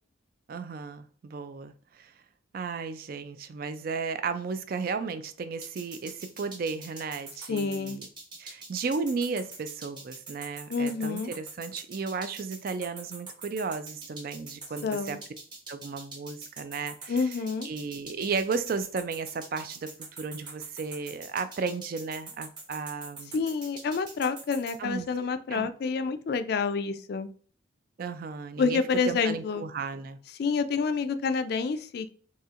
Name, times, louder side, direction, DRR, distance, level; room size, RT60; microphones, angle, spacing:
voice 1, 0.5-2.1 2.5-8.1 8.4-15.2 15.7-17.3 17.6-23.3 24.8-25.1 25.5-25.7 28.0-30.2, right 4 dB, 50° right, 0.3 m, -34 dB
sound 1, 5.6-24.8, right 3 dB, 25° right, 0.8 m, -44 dB
voice 2, 7.5-8.0 10.7-11.3 14.8-15.2 17.1-17.7 23.3-27.3 28.6-29.6 30.4-32.1, left 5 dB, 55° left, 0.3 m, -28 dB
4.2 x 2.7 x 2.4 m
head